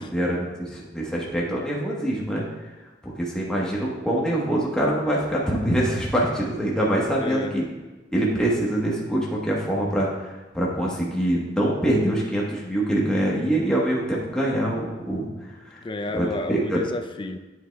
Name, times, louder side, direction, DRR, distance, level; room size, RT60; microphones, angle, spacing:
voice 1, 0.0-2.4 3.0-7.6 8.1-15.2 15.7-15.8 16.1-16.8, right 1 dB, 5° left, -5 dB, 1.2 m, -24 dB
voice 2, 7.2-7.5 15.8-17.4, left 2 dB, 25° left, 6 dB, 0.4 m, -30 dB
8.6 x 7.7 x 2.3 m, 1.2 s
head